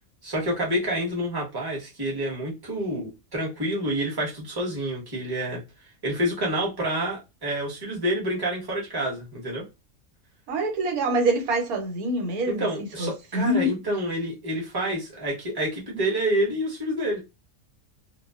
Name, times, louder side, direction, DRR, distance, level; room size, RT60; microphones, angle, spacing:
voice 1, 0.2-5.6 6.0-9.6 12.5-17.2, right 1 dB, 20° right, 0.9 m, -28 dB
voice 2, 10.5-12.7 13.0-13.7, right 1 dB, 90° right, 1.2 m, -25 dB
2.4 x 2.2 x 2.3 m
omnidirectional pair, 1.5 m